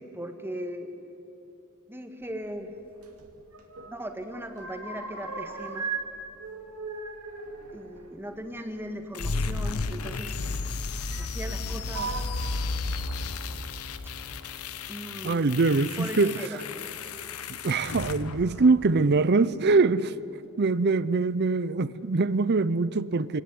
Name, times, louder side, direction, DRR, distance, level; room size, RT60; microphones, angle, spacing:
voice 1, 0.1-0.9 1.9-2.7 3.9-5.9 7.7-10.4 11.2-12.1 14.9-16.6, equal, 10° right, 1.7 m, -38 dB
sound 1, 3.0-4.0 4.2-6.1 6.4-8.9 9.9-10.0 11.0-11.6 11.9-12.2, right 4 dB, 80° right, 2.6 m, -37 dB
sound 2, 9.1-19.1, left 3 dB, 75° left, 1.0 m, -33 dB
voice 2, 15.2-16.6 17.5-20.1 20.6-23.4, right 3 dB, 50° right, 0.6 m, -23 dB
24.5 x 18.0 x 9.7 m
head